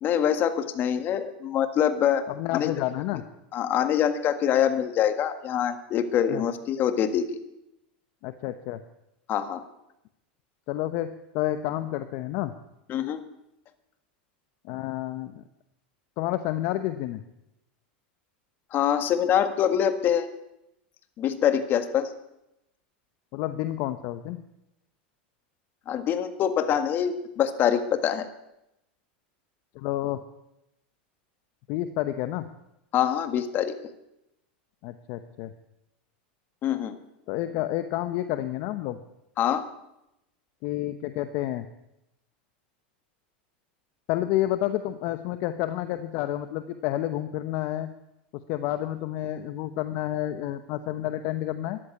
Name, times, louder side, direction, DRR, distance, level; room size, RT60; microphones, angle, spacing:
voice 1, 0.0-2.2 2.5-2.7 3.5-7.4 9.3-9.6 12.9-13.2 18.7-20.3 21.2-22.1 25.9-28.3 32.9-33.8 36.6-37.0 39.4-39.6, left 9 dB, 40° left, 9 dB, 1.7 m, -24 dB
voice 2, 2.3-3.2 6.3-6.4 8.2-8.8 10.7-12.5 14.7-15.4 16.2-17.2 23.3-24.4 29.7-30.2 31.7-32.6 34.8-35.5 37.3-39.0 40.6-41.6 44.1-47.9 48.3-51.8, left 14 dB, 55° left, 10 dB, 0.9 m, -30 dB
13.5 x 11.5 x 8.3 m, 0.87 s
hypercardioid pair, 110°, 5 cm